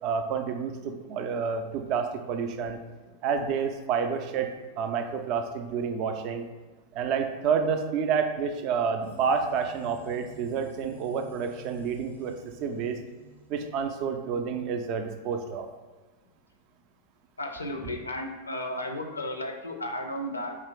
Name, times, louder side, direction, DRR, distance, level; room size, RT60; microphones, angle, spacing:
voice 1, 0.0-2.8 3.2-6.5 6.9-13.0 13.5-15.7, right 6 dB, 40° right, 5 dB, 0.4 m, -29 dB
sound 1, 9.0-14.3, equal, 85° right, 0.8 m, -51 dB
voice 2, 17.4-20.6, left 1 dB, 80° left, 4 dB, 0.4 m, -34 dB
2.8 x 2.4 x 3.6 m, 1.3 s
figure-of-eight pair, 90°, 0 cm